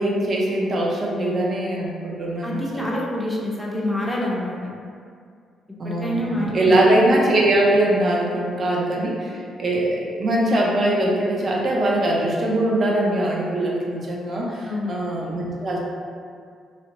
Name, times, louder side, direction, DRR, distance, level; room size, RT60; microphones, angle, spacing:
voice 1, 0.0-2.9 5.8-15.8, right 1 dB, 45° right, -2 dB, 0.5 m, -22 dB
voice 2, 2.4-4.6 5.8-7.1 14.6-15.0, left 1 dB, 5° left, -5 dB, 0.5 m, -27 dB
2.7 x 2.1 x 2.8 m, 2.2 s
cardioid pair, 90°, 0 cm